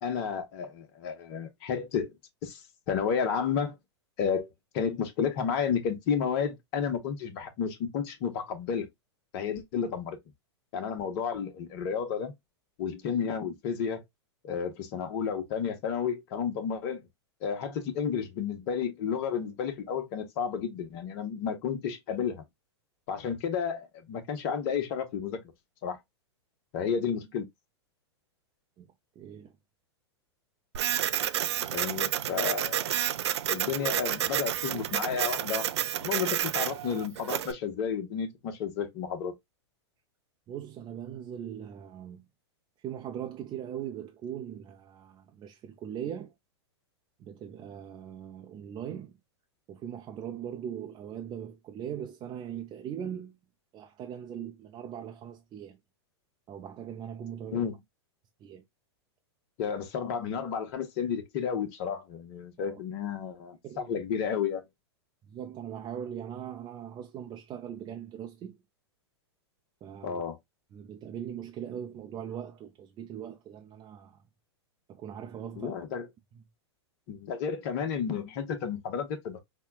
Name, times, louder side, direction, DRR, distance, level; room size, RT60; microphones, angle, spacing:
voice 1, 0.0-2.1 2.4-3.8 4.2-4.5 4.7-8.9 9.3-10.2 10.7-12.3 12.8-14.0 14.4-17.1 17.4-22.4 23.1-25.4 25.8-26.0 26.7-27.5 31.7-33.0 33.5-35.7 36.0-39.3 57.5-57.8 59.6-64.6 70.0-70.4 75.6-76.1 77.1-79.4, left 7 dB, 50° left, 1.1 m, -32 dB
voice 2, 28.8-29.6 31.6-31.7 40.5-42.3 42.8-46.3 47.2-49.2 49.7-53.4 53.7-55.8 56.5-57.7 58.4-58.6 62.6-62.8 63.6-63.9 65.2-68.6 69.8-70.2 70.7-74.2 74.9-75.7 76.3-76.4, right 9 dB, 30° right, 0.6 m, -40 dB
Printer, 30.7-37.5, right 11 dB, 70° right, 0.5 m, -30 dB
5.6 x 2.3 x 2.3 m
hypercardioid pair, 110°, 14 cm